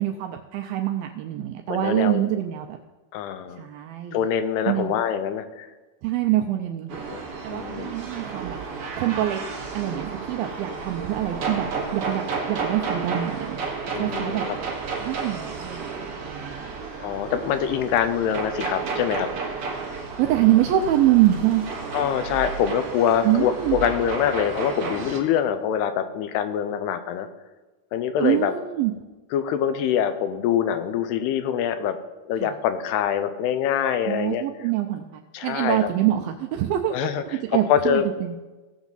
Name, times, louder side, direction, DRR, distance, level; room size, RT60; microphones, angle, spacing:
voice 1, 0.0-2.8 3.6-4.2 4.7-4.9 6.0-6.9 7.4-8.6 9.0-9.5 9.7-13.6 13.9-14.5 15.0-15.9 16.2-16.7 20.2-21.7 23.2-23.8 28.2-28.9 32.4-32.5 34.0-38.4, right 13 dB, 80° right, 4 dB, 2.2 m, -25 dB
voice 2, 1.7-2.2 3.1-3.7 4.1-5.7 7.1-7.9 13.9-14.4 17.0-19.3 21.9-27.3 27.9-28.5 29.3-32.0 32.3-34.4 35.3-35.9 36.9-37.2 37.7-38.0, left 9 dB, 85° left, 9 dB, 2.7 m, -24 dB
sound 1, 6.9-25.2, right 4 dB, 55° right, 1.7 m, -32 dB
18.5 x 7.2 x 4.0 m, 1.2 s
omnidirectional pair, 4.7 m